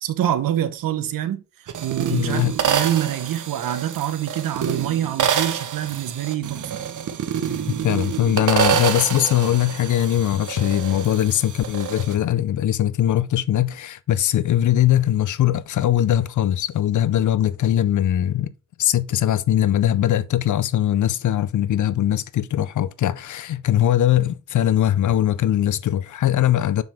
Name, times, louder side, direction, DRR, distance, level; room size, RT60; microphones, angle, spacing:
voice 1, 0.0-6.8, right 11 dB, 85° right, 1.1 m, -26 dB
sound 1, 1.7-12.2, right 8 dB, 65° right, 1.2 m, -27 dB
voice 2, 2.1-2.5 7.8-18.5 18.8-26.8, left 11 dB, 65° left, 0.6 m, -21 dB
6.9 x 6.1 x 3.5 m
cardioid pair, 100°, 33 cm